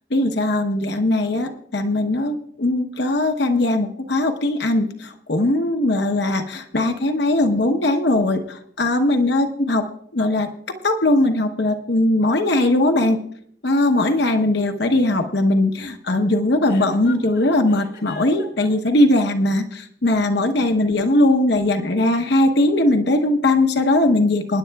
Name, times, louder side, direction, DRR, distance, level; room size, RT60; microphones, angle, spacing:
voice 1, 0.1-10.5 10.8-13.2 13.6-24.6, left 1 dB, 65° left, 5 dB, 0.9 m, -19 dB
Chuckle chortle, 16.6-18.9, left 4 dB, 80° left, 4.1 m, -41 dB
24.5 x 10.5 x 2.3 m, 0.67 s
head